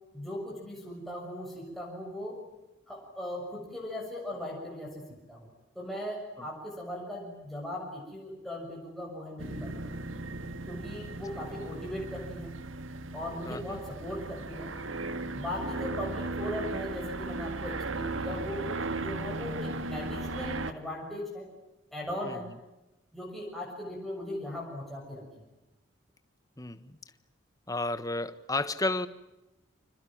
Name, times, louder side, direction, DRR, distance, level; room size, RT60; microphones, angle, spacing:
voice 1, 0.1-2.4 2.9-5.0 5.3-5.5 5.7-9.8 10.7-12.5 13.1-14.7 15.3-21.5 21.9-22.5 23.1-25.3, left 1 dB, ahead, 6.7 m, -38 dB
sound 1, 9.4-20.7, right 2 dB, 75° right, 1.8 m, -36 dB
voice 2, 13.4-13.8 22.2-22.4 26.6-27.0 27.7-29.1, left 2 dB, 15° left, 1.4 m, -32 dB
29.0 x 27.0 x 7.4 m
head